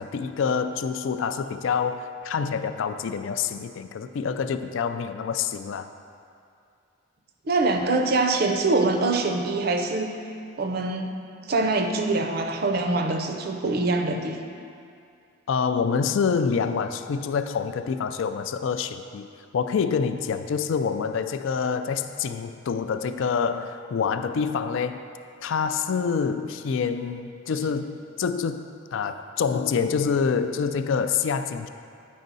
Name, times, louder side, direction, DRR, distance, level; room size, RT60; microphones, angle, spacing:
voice 1, 0.0-5.9 15.5-19.3 19.5-25.0 25.4-31.7, left 6 dB, 65° left, 9 dB, 0.3 m, -26 dB
voice 2, 7.5-10.1 10.6-11.1 11.5-14.4, right 3 dB, 45° right, 5 dB, 0.5 m, -24 dB
9.2 x 5.4 x 3.9 m, 2.4 s
head